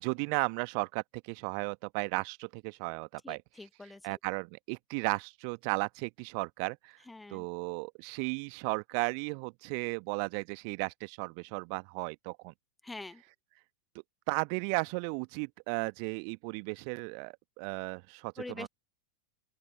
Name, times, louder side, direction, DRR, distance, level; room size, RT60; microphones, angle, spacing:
voice 1, 0.0-3.4 4.0-7.0 7.3-12.5 14.3-18.7, right 40 dB or more, 45° right, 1.3 m, -35 dB
voice 2, 3.2-4.2 7.1-7.5 12.8-13.2 18.4-18.7, left 2 dB, 5° left, 1.2 m, -45 dB
open air
figure-of-eight pair, 90°, 0 cm